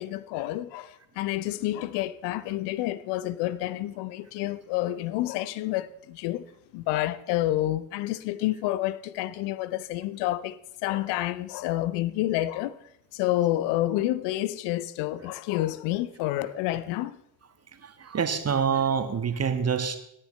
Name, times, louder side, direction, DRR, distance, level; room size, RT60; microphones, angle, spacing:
voice 1, 0.0-6.4 6.7-12.8 13.1-17.2, left 15 dB, 60° left, 0.6 m, -29 dB
voice 2, 17.8-20.0, right 6 dB, 30° right, 1.4 m, -26 dB
17.5 x 9.7 x 3.3 m
figure-of-eight pair, 45°, 46 cm